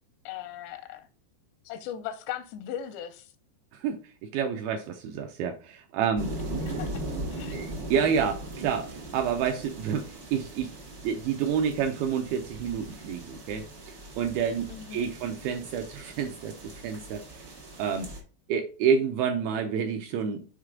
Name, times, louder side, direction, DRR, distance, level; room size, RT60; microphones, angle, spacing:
voice 1, 0.3-1.1 1.7-3.3 6.6-7.0 7.3-7.6 14.7-15.1, left 10 dB, 85° left, 2.8 m, -38 dB
voice 2, 3.7-6.3 7.5-10.7 11.0-13.7 14.2-17.4 17.8-18.1 18.5-20.5, right 7 dB, 85° right, 2.2 m, -29 dB
sound 1, 6.1-18.2, right 1 dB, 60° right, 1.0 m, -39 dB
6.5 x 4.8 x 3.7 m
omnidirectional pair, 5.0 m